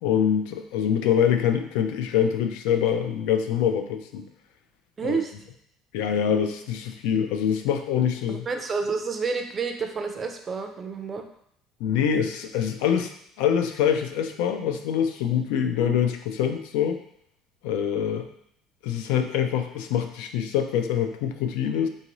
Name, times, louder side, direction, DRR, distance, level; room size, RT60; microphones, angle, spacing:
voice 1, 0.0-4.2 5.1-5.2 5.9-8.4 11.8-13.1 13.4-17.0 17.6-18.3 18.8-21.9, left 8 dB, 90° left, 6 dB, 0.4 m, -24 dB
voice 2, 5.0-5.3 8.3-11.2, right 5 dB, 25° right, 5 dB, 0.4 m, -29 dB
3.7 x 2.6 x 2.9 m, 0.70 s
cardioid pair, 145°, 0 cm